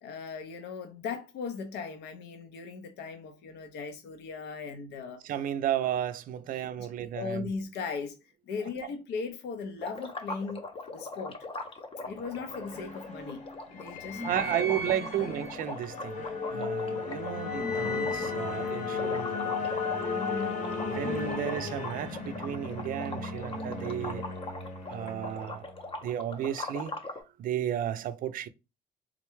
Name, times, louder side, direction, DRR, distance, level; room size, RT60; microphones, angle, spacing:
voice 1, 0.0-5.2 6.5-6.9 7.1-8.1 8.5-10.6 10.9-11.4 12.0-13.4 13.7-14.5 15.0-15.3 20.0-20.6, left 5 dB, 80° left, 0.6 m, -38 dB
voice 2, 5.2-7.5 14.2-16.2 16.5-19.5 20.9-24.2 24.9-25.7 26.0-26.9 27.4-28.5, right 11 dB, 55° right, 0.4 m, -33 dB
sound 1, 9.8-27.2, left 2 dB, 35° left, 0.6 m, -41 dB
sound 2, 12.1-25.8, left 4 dB, 50° left, 1.0 m, -35 dB
3.7 x 2.2 x 3.0 m
cardioid pair, 110°, 17 cm